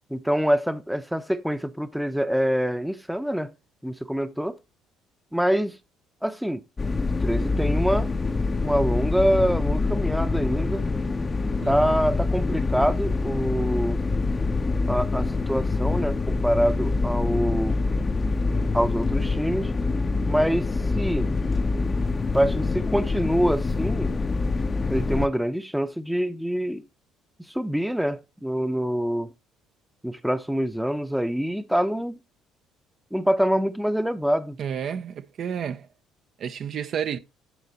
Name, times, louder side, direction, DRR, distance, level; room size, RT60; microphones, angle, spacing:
voice 1, 0.1-3.5 3.8-4.6 5.3-5.8 6.2-6.6 7.1-8.1 8.6-10.9 11.6-14.0 14.9-17.8 18.7-19.7 20.3-21.3 22.3-24.1 24.9-26.8 27.5-29.3 30.0-32.2 33.1-34.6, equal, 5° right, 0.8 m, -25 dB
sound 1, 6.8-25.3, left 3 dB, 30° left, 0.7 m, -25 dB
voice 2, 11.6-12.0 34.6-35.9 36.4-37.2, right 8 dB, 55° right, 0.7 m, -31 dB
10.0 x 4.1 x 4.1 m
supercardioid pair, 75°, 0 cm